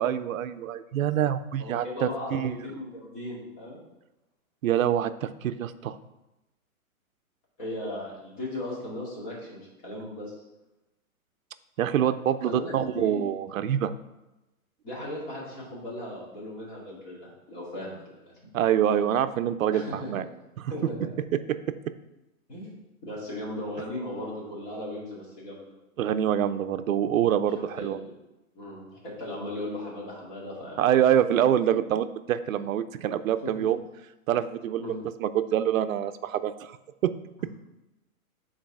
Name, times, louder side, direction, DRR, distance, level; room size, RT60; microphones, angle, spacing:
voice 1, 0.0-2.6 4.6-6.0 11.8-13.9 18.5-20.2 26.0-28.0 30.8-33.8 34.3-34.8 35.2-36.8 37.0-37.1, right 10 dB, 65° right, 11 dB, 0.5 m, -25 dB
voice 2, 1.6-3.8 7.6-10.3 11.9-12.0 12.4-13.2 14.8-18.3 19.7-20.1 20.7-21.1 22.5-25.7 27.6-28.1 28.5-30.8 33.4-33.7 34.8-35.0, left 1 dB, 30° left, -5 dB, 2.3 m, -37 dB
6.5 x 4.0 x 4.7 m, 0.98 s
hypercardioid pair, 165°, 43 cm